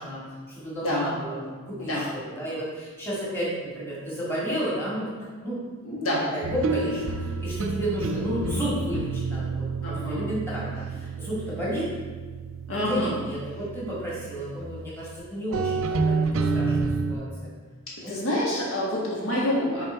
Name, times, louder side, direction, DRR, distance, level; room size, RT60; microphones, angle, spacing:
voice 1, 0.0-5.1 5.4-5.6 6.1-11.9 12.7-17.5 18.0-18.1, equal, 10° left, -7 dB, 2.0 m, -32 dB
voice 2, 5.8-6.2 9.8-10.3 12.7-13.1 18.1-19.8, left 1 dB, 75° left, -5 dB, 1.7 m, -27 dB
sound 1, 6.4-15.2 15.5-17.1, right 4 dB, 70° right, 0.5 m, -29 dB
6.9 x 3.6 x 4.5 m, 1.4 s
head